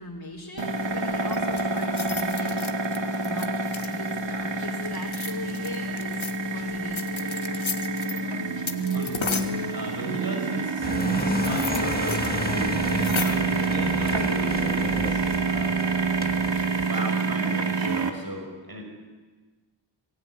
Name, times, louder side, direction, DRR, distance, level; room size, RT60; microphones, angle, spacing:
voice 1, 0.0-2.6 3.2-7.9 8.1-8.3, left 1 dB, 40° left, -3 dB, 4.4 m, -40 dB
sound 1, 0.6-18.1, right 3 dB, 60° right, 2.6 m, -27 dB
sound 2, 1.3-4.1 5.0-6.4 6.9-8.2 8.7-9.6 11.0-12.3 12.5-12.6 12.8-13.5 14.4-14.8, left 5 dB, 70° left, 1.9 m, -34 dB
voice 2, 8.9-15.8 16.8-18.8, right 1 dB, 45° right, 3 dB, 6.0 m, -37 dB
sound 3, 10.8-16.9, left 2 dB, 20° left, 2.0 m, -33 dB
25.5 x 19.5 x 9.8 m, 1.3 s
wide cardioid pair, 50°, 49 cm